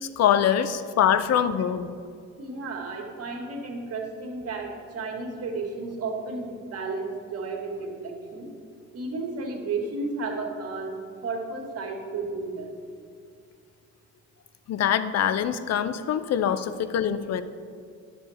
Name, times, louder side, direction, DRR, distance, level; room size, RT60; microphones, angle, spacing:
voice 1, 0.0-1.9 14.7-17.4, left 9 dB, 60° left, 12 dB, 0.6 m, -24 dB
voice 2, 2.4-8.5 8.9-11.0 11.2-12.7, right 3 dB, 55° right, 0 dB, 1.9 m, -33 dB
11.0 x 6.7 x 4.2 m, 2.2 s
cardioid pair, 90°, 30 cm